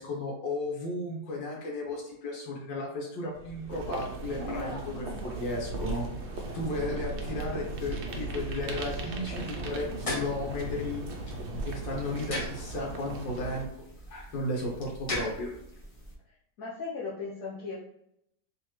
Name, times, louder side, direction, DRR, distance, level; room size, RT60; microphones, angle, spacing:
voice 1, 0.0-6.0 6.5-11.0 11.7-15.5, left 2 dB, 75° left, -2 dB, 1.7 m, -34 dB
Vehicle, 3.3-13.6, right 1 dB, 10° right, 0.6 m, -41 dB
sound 1, 3.7-13.7, right 2 dB, 75° right, 0.6 m, -39 dB
sound 2, 9.7-16.1, left 1 dB, 40° left, 0.5 m, -40 dB
voice 2, 16.6-17.8, left 4 dB, 55° left, -6 dB, 1.1 m, -36 dB
3.7 x 3.1 x 3.0 m, 0.77 s
omnidirectional pair, 2.0 m